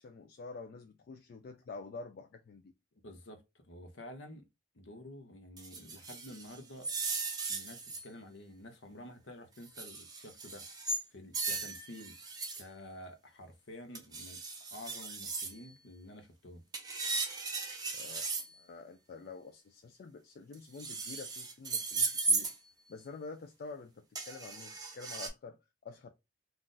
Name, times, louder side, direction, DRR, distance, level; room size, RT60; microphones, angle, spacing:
voice 1, 0.0-2.7 17.9-18.3 18.6-22.5 22.9-26.1, left 4 dB, 50° left, 0.3 m, -48 dB
voice 2, 3.0-4.4 4.7-6.9 7.5-10.7 11.1-12.2 12.6-14.4 14.7-16.6, left 1 dB, 70° left, 0.7 m, -50 dB
sound 1, 5.6-8.1 9.7-11.0 11.3-12.6 13.9-15.5 16.7-18.5 20.5-22.5 24.1-25.3, right 3 dB, 20° right, 0.7 m, -36 dB
2.5 x 2.4 x 3.7 m
head